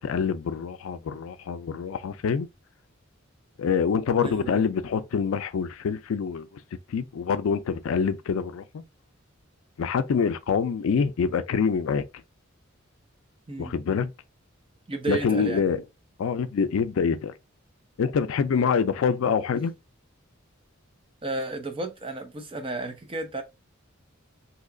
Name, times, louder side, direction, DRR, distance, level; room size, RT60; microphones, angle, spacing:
voice 1, 0.0-2.5 3.6-6.5 6.9-8.8 9.8-12.0 13.6-14.1 15.1-15.8 16.2-17.3 18.0-19.7, left 6 dB, 70° left, 0.4 m, -25 dB
voice 2, 4.2-4.6 13.5-13.7 14.9-15.7 21.2-23.4, right 3 dB, 25° right, 0.6 m, -32 dB
2.8 x 2.3 x 3.7 m
head